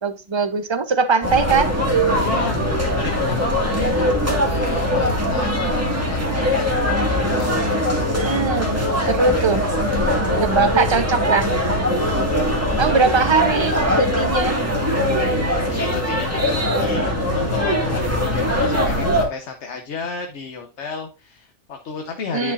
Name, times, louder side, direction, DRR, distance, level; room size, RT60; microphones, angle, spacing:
voice 1, 0.0-1.7 8.2-8.8 9.1-9.7 10.4-11.6 12.8-14.6 22.3-22.5, right 5 dB, 30° right, 0.7 m, -20 dB
sound 1, 1.2-19.3, equal, 15° right, 1.8 m, -21 dB
voice 2, 2.2-4.1 4.4-6.7 7.0-7.6 15.7-22.5, left 5 dB, 75° left, 1.2 m, -32 dB
10.5 x 5.7 x 2.5 m
omnidirectional pair, 1.2 m